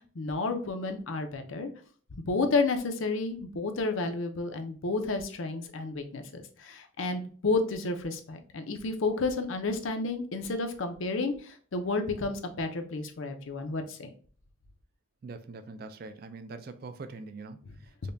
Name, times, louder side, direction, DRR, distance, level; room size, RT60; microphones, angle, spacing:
voice 1, 0.2-1.7 2.2-14.1, left 3 dB, 85° left, 0.6 m, -31 dB
voice 2, 15.2-18.1, right 3 dB, 50° right, 0.3 m, -43 dB
5.2 x 2.2 x 2.6 m
head